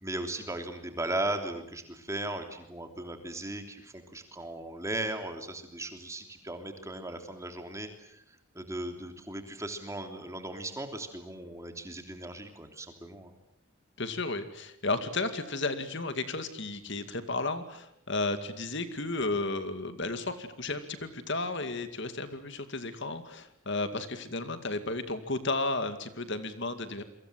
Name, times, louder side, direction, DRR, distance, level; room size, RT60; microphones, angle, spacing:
voice 1, 0.0-13.3, right 1 dB, 15° right, 6 dB, 3.2 m, -37 dB
voice 2, 14.0-27.0, left 2 dB, 55° left, 10 dB, 2.3 m, -33 dB
29.0 x 24.0 x 7.6 m, 0.75 s
head